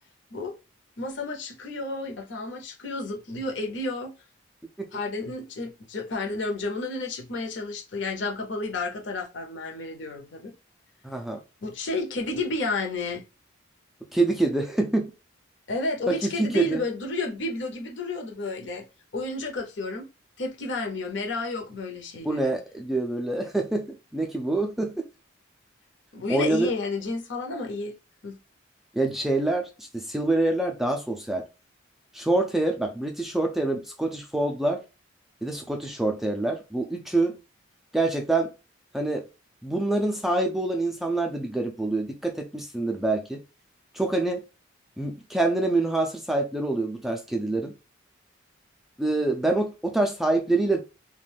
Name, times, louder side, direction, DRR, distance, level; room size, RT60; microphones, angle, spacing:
voice 1, 1.0-4.1 4.9-10.5 11.6-13.2 15.7-18.8 19.1-20.1 20.4-22.6 26.1-27.9 28.2-28.4, left 2 dB, 65° left, 0.7 m, -31 dB
voice 2, 11.0-11.4 14.1-15.1 16.1-16.8 22.2-25.1 26.3-26.7 28.9-31.5 32.1-34.8 35.4-37.3 37.9-38.5 38.9-39.2 39.6-43.4 43.9-44.4 45.0-47.7 49.0-50.8, right 2 dB, ahead, 0.3 m, -26 dB
2.4 x 2.2 x 3.3 m
head